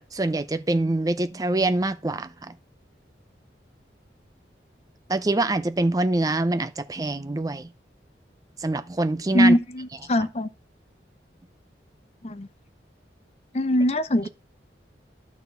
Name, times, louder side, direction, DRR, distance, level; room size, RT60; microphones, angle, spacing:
voice 1, 0.0-2.5 5.1-7.7 8.6-9.6, right 2 dB, 20° right, 0.4 m, -25 dB
voice 2, 9.3-10.5 12.2-12.5 13.5-14.3, equal, 35° left, 0.6 m, -22 dB
11.5 x 4.1 x 6.8 m
head